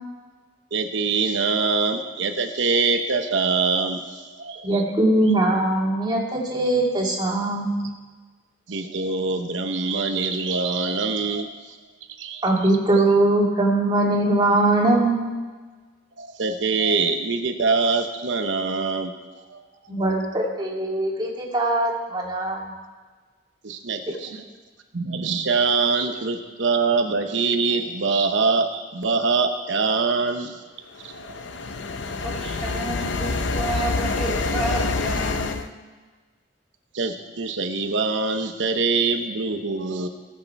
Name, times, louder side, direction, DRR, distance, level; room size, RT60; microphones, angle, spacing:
voice 1, 0.7-4.8 8.7-11.8 12.2-12.4 16.2-19.1 19.5-19.6 23.6-24.3 24.9-30.6 31.0-31.7 36.9-40.1, right 4 dB, 90° right, 6 dB, 0.9 m, -24 dB
voice 2, 4.6-7.8 12.4-15.3 19.9-22.7, right 2 dB, 25° right, -2 dB, 2.3 m, -21 dB
sound 1, 31.0-35.7, left 3 dB, 75° left, 0.6 m, -26 dB
voice 3, 32.2-35.7, right 2 dB, ahead, -4 dB, 2.4 m, -31 dB
19.5 x 6.6 x 4.6 m, 1.4 s
head